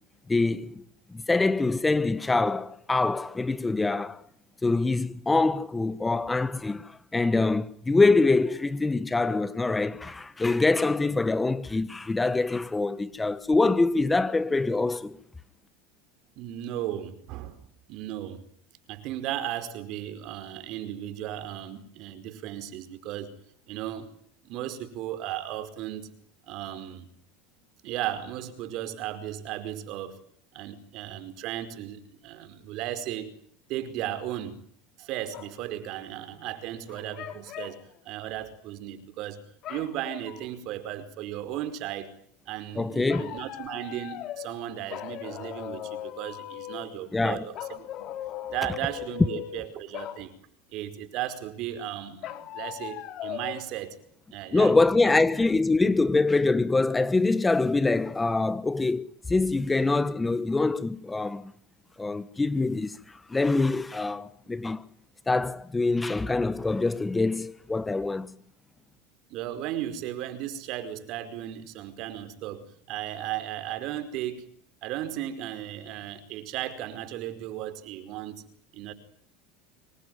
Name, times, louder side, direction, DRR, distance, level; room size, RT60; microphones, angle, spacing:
voice 1, 0.3-0.8 1.1-4.2 4.6-15.2 42.8-43.3 47.1-47.4 54.5-61.5 62.0-64.8 65.3-68.3, left 3 dB, 15° left, 1.2 m, -24 dB
voice 2, 16.3-18.4 18.9-23.4 23.7-24.1 24.4-26.1 26.5-27.1 27.8-30.2 30.5-33.3 33.7-34.6 35.0-37.8 38.0-39.4 39.7-42.1 42.5-48.1 48.5-50.3 50.7-54.0 54.3-54.8 55.0-55.2 69.3-74.5 74.8-78.4 78.7-78.9, right 12 dB, 60° right, 4.8 m, -35 dB
sound 1, 35.3-35.6 36.9-37.8 39.6-40.5 43.1-44.6 44.9-47.0 47.5-49.7 49.9-50.2 52.2-53.6, left 12 dB, 50° left, 4.1 m, -38 dB
25.5 x 23.5 x 9.5 m
supercardioid pair, 115°, 0 cm